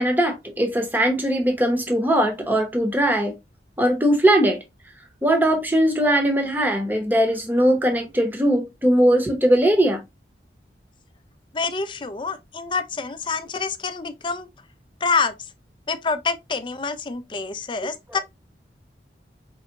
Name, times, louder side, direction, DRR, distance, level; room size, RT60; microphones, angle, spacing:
voice 1, 0.0-3.3 3.8-4.6 5.2-10.0, right 1 dB, 10° right, 0.8 m, -20 dB
voice 2, 11.5-14.5 15.0-15.3 15.9-18.2, left 4 dB, 25° left, 0.4 m, -26 dB
4.5 x 3.3 x 2.8 m
head